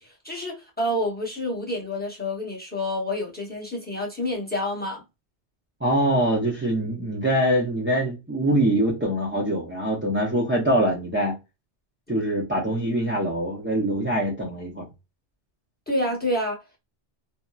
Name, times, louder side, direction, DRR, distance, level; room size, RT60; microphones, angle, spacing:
voice 1, 0.0-5.0 15.9-16.6, left 1 dB, 10° left, 0.8 m, -28 dB
voice 2, 5.8-11.3 12.1-14.8, right 1 dB, 15° right, 0.4 m, -23 dB
2.8 x 2.1 x 2.3 m
omnidirectional pair, 1.2 m